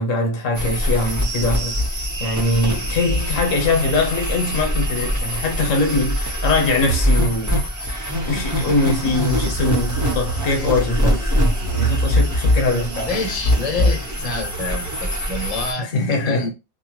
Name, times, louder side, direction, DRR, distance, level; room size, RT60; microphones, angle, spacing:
voice 1, 0.0-7.6 8.2-11.3 11.8-13.1 15.8-16.5, left 3 dB, 75° left, 1.2 m, -22 dB
sound 1, 0.5-15.7, equal, 20° right, 0.6 m, -22 dB
voice 2, 13.1-16.5, left 3 dB, 35° left, 0.7 m, -27 dB
2.8 x 2.2 x 2.9 m
omnidirectional pair, 1.3 m